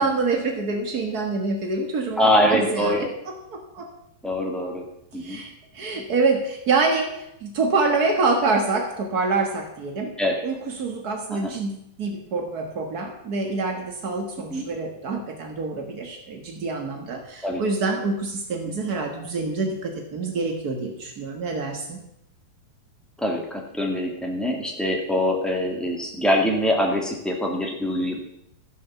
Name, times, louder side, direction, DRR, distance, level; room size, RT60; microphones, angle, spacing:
voice 1, 0.0-3.1 3.5-3.9 5.2-10.1 10.4-22.0, right 3 dB, 80° right, 2 dB, 0.8 m, -26 dB
voice 2, 2.2-3.1 4.2-4.8 5.1-5.4 10.2-10.4 11.3-11.5 14.5-14.7 17.4-17.6 23.2-28.2, left 1 dB, ahead, 0 dB, 0.7 m, -23 dB
14.5 x 7.4 x 6.8 m, 0.79 s
omnidirectional pair, 4.3 m